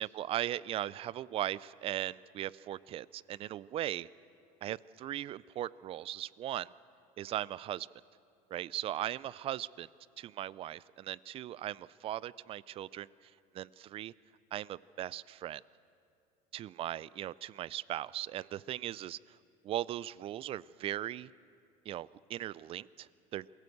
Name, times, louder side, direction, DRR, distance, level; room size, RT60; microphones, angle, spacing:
voice 1, 0.0-4.1 4.6-6.7 7.2-7.9 8.5-9.9 10.2-13.1 13.5-14.1 14.5-15.6 16.5-19.4 19.6-21.3 21.9-23.6, right 12 dB, 40° right, 21 dB, 0.4 m, -38 dB
23.5 x 16.0 x 8.0 m, 2.4 s
cardioid pair, 130°, 16 cm